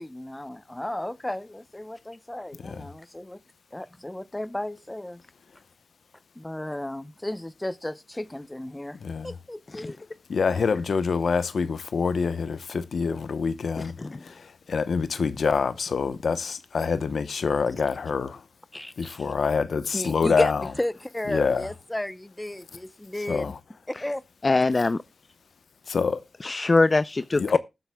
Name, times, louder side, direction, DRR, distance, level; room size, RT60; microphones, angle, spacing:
voice 1, 0.0-3.4 3.7-5.2 6.4-9.0 9.2-10.0 18.7-19.3 19.9-23.5 23.9-24.6, left 1 dB, 15° left, 0.8 m, -33 dB
voice 2, 9.0-9.3 10.3-13.9 14.2-18.4 19.0-20.6 21.3-21.6 23.3-23.5 25.9-26.2 27.4-27.6, left 5 dB, 70° left, 0.9 m, -26 dB
voice 3, 24.4-25.0 26.4-27.6, left 3 dB, 40° left, 0.5 m, -22 dB
20.0 x 7.9 x 2.3 m
cardioid pair, 65°, 0 cm